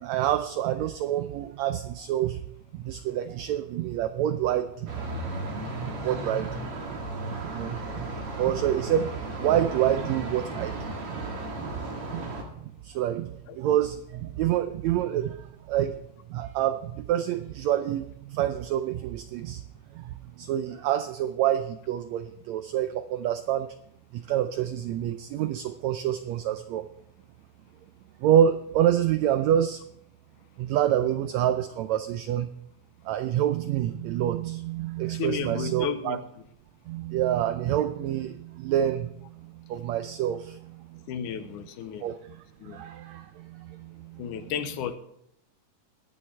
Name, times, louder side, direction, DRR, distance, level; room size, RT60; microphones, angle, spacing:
voice 1, 0.0-2.4 2.7-4.9 5.3-6.7 7.4-11.8 12.1-12.3 12.8-16.0 16.3-19.6 19.9-23.7 24.1-26.9 28.2-29.8 30.6-32.5 33.0-36.2 36.9-41.0 42.0-44.5, right 11 dB, 85° right, 10 dB, 1.6 m, -28 dB
sound 1, 4.9-12.4, right 2 dB, 50° right, 2.6 m, -35 dB
voice 2, 35.1-36.2 41.1-42.1 42.6-42.8 44.2-45.0, left 8 dB, 75° left, 9 dB, 2.3 m, -33 dB
20.5 x 8.9 x 3.3 m, 0.75 s
omnidirectional pair, 3.8 m